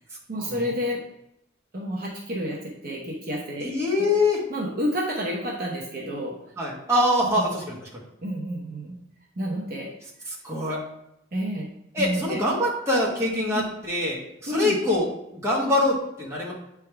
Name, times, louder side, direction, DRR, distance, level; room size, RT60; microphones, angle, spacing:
voice 1, 0.3-1.0 1.7-2.6 2.8-3.7 4.0-4.1 4.5-6.3 8.2-9.0 9.4-9.9 11.3-11.7 12.0-12.4 13.5-13.6 14.5-14.8, equal, 50° right, -2 dB, 0.9 m, -29 dB
voice 2, 3.6-4.5 6.6-8.0 10.3-10.8 11.9-16.5, left 1 dB, 15° right, -5 dB, 1.4 m, -24 dB
8.1 x 3.6 x 3.4 m, 0.81 s
head